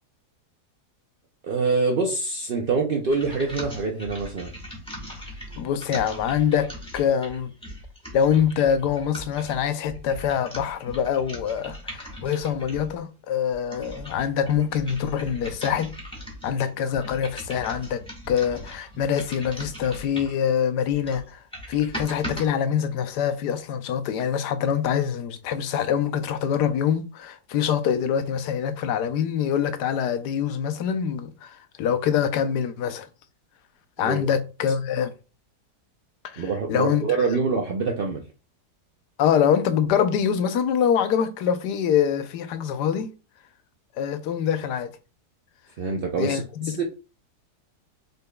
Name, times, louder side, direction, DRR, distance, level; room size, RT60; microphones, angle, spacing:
voice 1, 1.4-4.5 34.0-34.3 36.4-38.2 45.8-46.8, right 4 dB, 65° right, 0.5 m, -25 dB
sound 1, 3.1-12.9 13.5-20.4 20.9-22.5, equal, 5° left, 1.2 m, -39 dB
voice 2, 5.6-7.5 8.1-15.9 16.4-33.1 34.0-35.1 36.2-37.0 39.2-43.1 44.0-44.9 46.2-46.8, left 8 dB, 90° left, 1.2 m, -25 dB
5.2 x 4.1 x 2.2 m
omnidirectional pair, 1.7 m